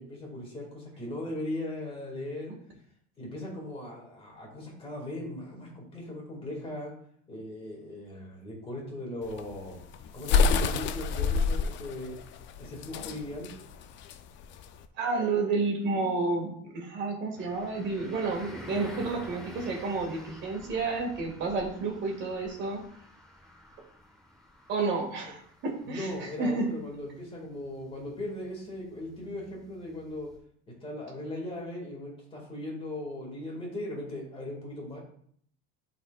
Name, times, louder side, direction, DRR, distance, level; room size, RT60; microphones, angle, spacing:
voice 1, 0.0-2.5 3.2-6.9 7.3-9.8 10.1-12.2 12.6-13.5 25.8-30.3 30.7-35.0, left 1 dB, 15° left, -2 dB, 2.0 m, -38 dB
sound 1, 9.2-14.8, left 5 dB, 35° left, 0.5 m, -28 dB
voice 2, 15.0-22.8 24.7-26.7, right 3 dB, 35° right, 0 dB, 2.0 m, -30 dB
sound 2, 17.4-30.4, left 1 dB, ahead, 1.1 m, -50 dB
11.5 x 4.3 x 2.4 m, 0.62 s
cardioid pair, 155°, 31 cm